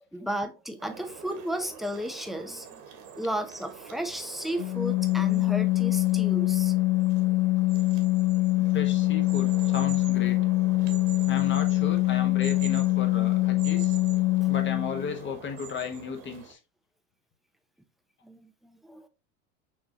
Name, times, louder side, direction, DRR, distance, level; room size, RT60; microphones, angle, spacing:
voice 1, 0.1-2.8 3.2-6.7 10.8-11.0 14.4-14.5 18.2-19.1, right 1 dB, ahead, 0.6 m, -34 dB
sound 1, 0.8-16.5, right 7 dB, 50° right, 1.5 m, -45 dB
Organ, 4.6-15.2, left 19 dB, 60° left, 0.6 m, -24 dB
voice 2, 8.6-10.4 11.3-14.0 14.5-16.6, left 5 dB, 25° left, 1.0 m, -35 dB
6.0 x 3.0 x 2.8 m
hypercardioid pair, 95°, 43 cm